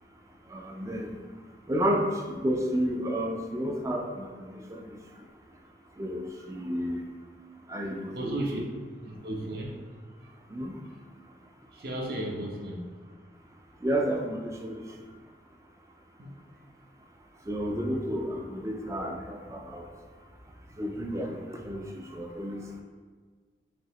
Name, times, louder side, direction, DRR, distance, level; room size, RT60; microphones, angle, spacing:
voice 1, 0.5-1.2 1.7-5.0 6.0-7.0 7.7-8.7 10.5-10.7 13.8-14.8 17.5-19.9 20.8-22.8, equal, 15° right, 2 dB, 0.4 m, -31 dB
voice 2, 8.1-8.6 9.0-9.8 10.2-10.3 11.7-12.9 16.2-16.4, right 1 dB, 55° right, -1 dB, 0.7 m, -35 dB
5.1 x 2.8 x 2.9 m, 1.5 s
head